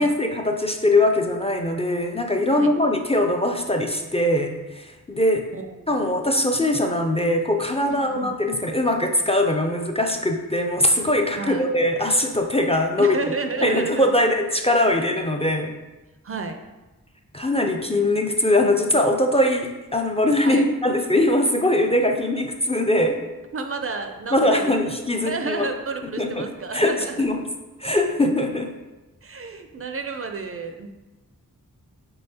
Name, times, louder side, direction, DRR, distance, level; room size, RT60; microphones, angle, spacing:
voice 1, 0.0-5.5 5.9-13.2 13.6-15.7 17.3-23.2 24.3-25.7 26.0-27.4 27.8-28.7, left 1 dB, 20° left, 3 dB, 0.4 m, -21 dB
voice 2, 5.5-6.1 7.9-8.3 11.3-11.6 13.0-14.1 16.2-16.6 20.4-20.6 23.5-24.7 25.2-27.2 29.2-30.9, right 4 dB, 40° right, 6 dB, 0.4 m, -31 dB
5.4 x 3.5 x 2.8 m, 1.1 s
wide cardioid pair, 75°, 35 cm